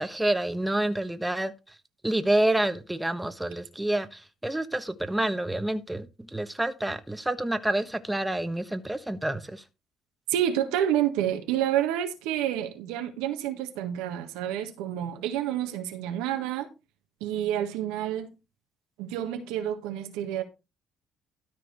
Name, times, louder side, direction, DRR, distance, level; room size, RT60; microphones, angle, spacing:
voice 1, 0.0-1.5 2.0-6.1 6.3-9.6, right 1 dB, 10° right, 1.2 m, -28 dB
voice 2, 10.3-16.7 17.2-18.3 19.0-20.4, right 11 dB, 80° right, 1.5 m, -29 dB
13.0 x 4.9 x 4.8 m
hypercardioid pair, 55°, 0 cm